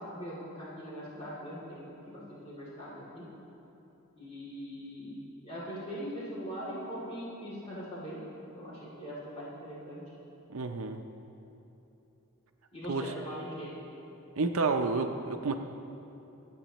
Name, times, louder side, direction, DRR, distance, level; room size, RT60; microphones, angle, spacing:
voice 1, 0.1-3.2 4.1-5.2 5.4-8.2 8.5-10.0 12.7-13.7, equal, 25° left, -7 dB, 2.8 m, -41 dB
voice 2, 10.5-11.0 12.9-13.1 14.4-15.5, right 3 dB, 75° right, 5 dB, 0.6 m, -30 dB
25.5 x 8.7 x 3.0 m, 3.0 s
head